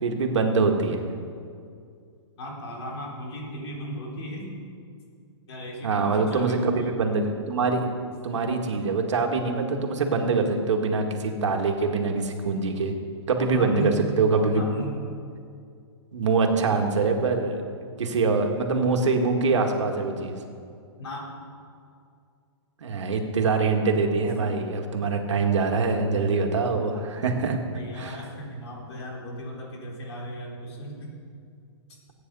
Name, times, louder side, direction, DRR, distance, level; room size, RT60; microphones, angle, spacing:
voice 1, 0.0-1.0 5.8-7.9 8.2-12.9 13.3-13.9 14.2-14.6 16.1-17.6 18.0-20.4 22.8-27.6 27.9-28.2, right 4 dB, 90° right, 3 dB, 2.0 m, -24 dB
voice 2, 2.4-4.6 5.5-7.0 13.4-14.0 14.4-15.0 21.0-21.3 27.7-31.1 31.9-32.0, equal, 65° left, -2 dB, 4.1 m, -36 dB
17.0 x 9.4 x 5.5 m, 2.3 s
hypercardioid pair, 160°, 15 cm